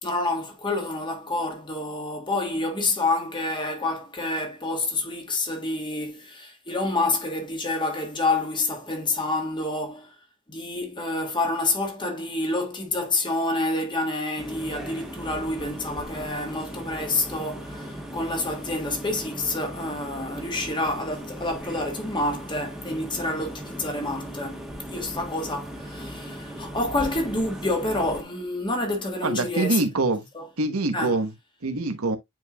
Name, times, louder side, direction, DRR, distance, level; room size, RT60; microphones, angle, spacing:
voice 1, 0.0-10.1 10.5-24.6 24.9-29.8 30.3-30.5 30.9-31.2, left 2 dB, 20° left, 1.6 m, -28 dB
sound 1, 14.4-28.2, equal, ahead, 1.3 m, -38 dB
voice 2, 29.2-30.2 30.6-31.3 31.6-32.2, right 2 dB, 80° right, 1.2 m, -24 dB
9.1 x 4.6 x 2.3 m
head